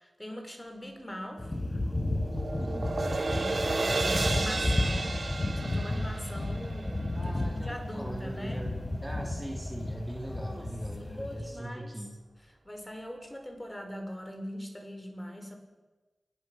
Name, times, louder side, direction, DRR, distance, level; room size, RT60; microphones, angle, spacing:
voice 1, 0.0-1.5 2.8-2.9 3.3-8.7 10.2-10.7 11.0-11.9 12.6-15.6, equal, 15° left, 4 dB, 5.2 m, -41 dB
sound 1, 1.4-11.6, left 1 dB, 35° left, 4.4 m, -33 dB
sound 2, 1.4-7.7, right 3 dB, 55° right, 2.5 m, -33 dB
voice 2, 2.6-3.3 7.1-12.2, right 1 dB, 10° right, 0 dB, 3.3 m, -41 dB
28.5 x 18.0 x 6.3 m, 1.2 s
cardioid pair, 50°, 0 cm